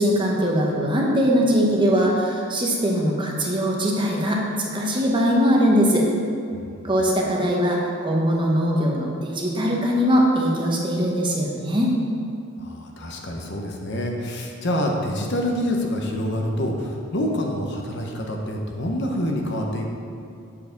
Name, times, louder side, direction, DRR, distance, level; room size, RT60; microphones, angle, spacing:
voice 1, 0.0-6.0 6.8-11.9, equal, 20° right, -2 dB, 1.0 m, -21 dB
voice 2, 6.5-6.9 12.6-19.9, left 1 dB, 55° left, 1 dB, 0.9 m, -27 dB
8.3 x 4.9 x 5.2 m, 2.6 s
head